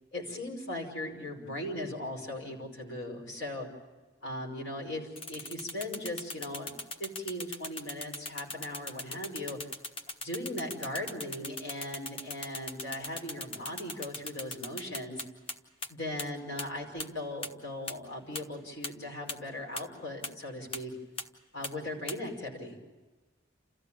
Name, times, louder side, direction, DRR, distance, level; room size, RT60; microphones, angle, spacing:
voice 1, 0.1-3.7 4.2-6.7 7.0-9.6 10.2-15.2 15.9-20.9 21.5-22.7, left 1 dB, 70° left, -1 dB, 5.1 m, -38 dB
sound 1, 5.2-15.5 15.8-15.9 16.2-16.3 16.6-16.7 17.0-17.1 17.4-17.5 17.9-18.0 18.3-18.4 18.8-18.9 19.3-19.4 19.8-19.9 20.2-20.3 20.7-20.8 21.2-21.3 21.6-21.7 22.1-22.2, left 2 dB, 30° left, 1.2 m, -38 dB
29.5 x 14.5 x 8.8 m, 1.2 s
head